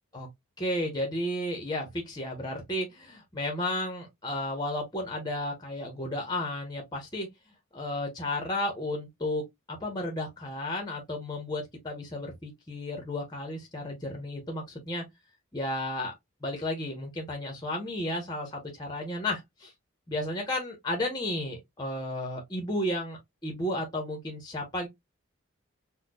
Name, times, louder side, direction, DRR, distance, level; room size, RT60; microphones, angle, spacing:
voice 1, 0.6-7.3 7.7-15.0 15.5-16.1 16.4-19.7 20.1-24.9, left 1 dB, 20° left, 0.9 m, -33 dB
4.2 x 2.3 x 2.3 m
head